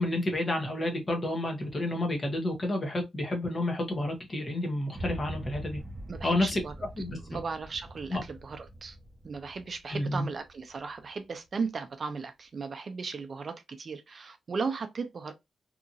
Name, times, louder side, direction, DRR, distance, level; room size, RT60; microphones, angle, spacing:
voice 1, 0.0-5.8 6.2-6.6 7.0-7.4 8.1-8.2 9.9-10.3, left 1 dB, 30° left, 0.9 m, -30 dB
sound 1, 4.9-11.1, right 1 dB, 10° right, 0.8 m, -43 dB
voice 2, 6.1-6.7 7.3-9.0 9.2-15.3, right 4 dB, 45° right, 0.4 m, -36 dB
2.8 x 2.5 x 2.5 m
wide cardioid pair, 120°, 0 cm